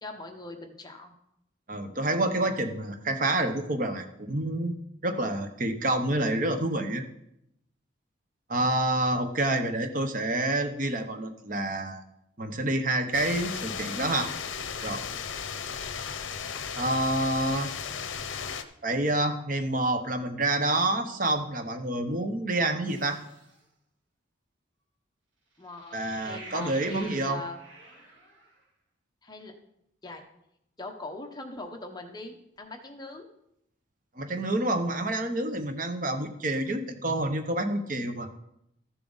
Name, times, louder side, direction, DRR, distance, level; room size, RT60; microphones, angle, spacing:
voice 1, 0.0-1.1 17.8-18.2 25.6-26.0 26.2-27.6 29.2-29.5 30.0-30.2 30.8-33.3, left 2 dB, 20° left, 4 dB, 1.0 m, -41 dB
voice 2, 1.7-4.8 5.0-7.1 8.5-12.0 12.4-14.3 14.8-15.0 16.8-17.7 18.8-23.2 25.9-27.4 34.2-38.3, right 2 dB, 40° right, 7 dB, 0.8 m, -28 dB
sound 1, 13.1-18.6, left 6 dB, 80° left, 0.7 m, -35 dB
sound 2, 22.9-23.6 25.6-28.6, right 2 dB, 75° right, 2.8 m, -47 dB
14.0 x 7.1 x 4.0 m, 0.79 s
head